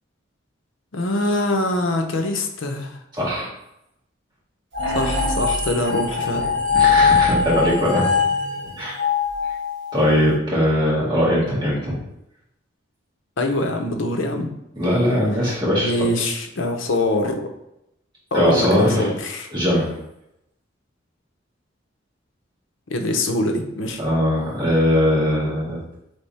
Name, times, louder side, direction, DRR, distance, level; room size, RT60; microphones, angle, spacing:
voice 1, 0.9-3.0 4.9-6.5 13.4-14.5 15.8-17.5 18.3-19.5 22.9-24.0, left 1 dB, 75° left, 5 dB, 0.7 m, -23 dB
voice 2, 3.2-3.5 6.7-8.1 8.8-9.0 9.9-12.0 14.8-15.9 18.3-19.1 19.5-20.0 24.0-25.8, equal, 25° right, -7 dB, 1.7 m, -20 dB
sound 1, 4.7-10.2, left 5 dB, 65° right, 1.3 m, -21 dB
3.6 x 3.4 x 4.1 m, 0.83 s
head